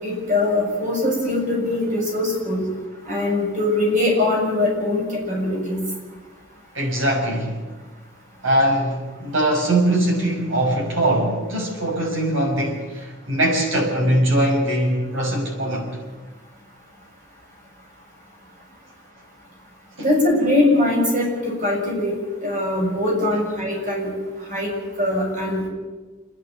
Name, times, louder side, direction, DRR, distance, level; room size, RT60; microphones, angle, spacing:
voice 1, 0.0-2.6 3.1-5.8 20.0-22.1 22.4-24.1 24.5-24.7 25.0-25.7, left 1 dB, 40° right, 7.1 m, -21 dB
voice 2, 6.7-7.6 8.4-15.9 20.0-20.1, right 1 dB, 90° right, 6.0 m, -21 dB
28.0 x 10.5 x 9.4 m
head